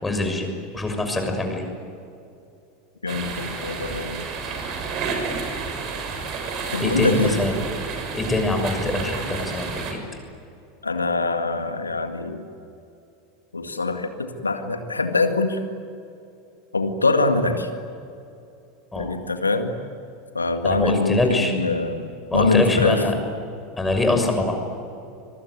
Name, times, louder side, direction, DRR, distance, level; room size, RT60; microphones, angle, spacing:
voice 1, 0.0-1.6 6.8-7.7 8.1-10.0 18.9-19.1 20.6-21.5 22.3-23.1 23.8-24.5, left 2 dB, 10° left, 4 dB, 6.4 m, -24 dB
voice 2, 3.0-4.2 6.7-7.5 10.8-12.4 13.5-15.6 16.7-17.7 19.0-19.7 20.3-23.0, left 3 dB, 90° left, 7 dB, 2.0 m, -23 dB
sound 1, 3.1-9.9, right 5 dB, 45° right, 6.2 m, -30 dB
25.5 x 23.5 x 9.5 m, 2.7 s
figure-of-eight pair, 80°, 0 cm